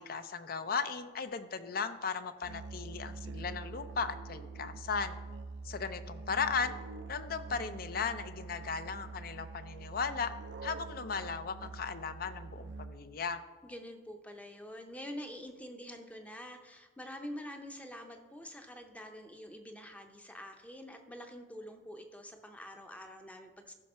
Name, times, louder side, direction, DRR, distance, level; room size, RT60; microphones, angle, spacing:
voice 1, 0.0-5.2 5.6-6.8 7.1-10.3 10.6-13.4, left 5 dB, 55° left, 11 dB, 0.5 m, -36 dB
Musical instrument, 2.4-13.2, right 4 dB, 80° right, 0.5 m, -45 dB
voice 2, 13.6-23.7, equal, 10° left, 5 dB, 0.7 m, -46 dB
14.5 x 5.8 x 4.3 m, 1.4 s
head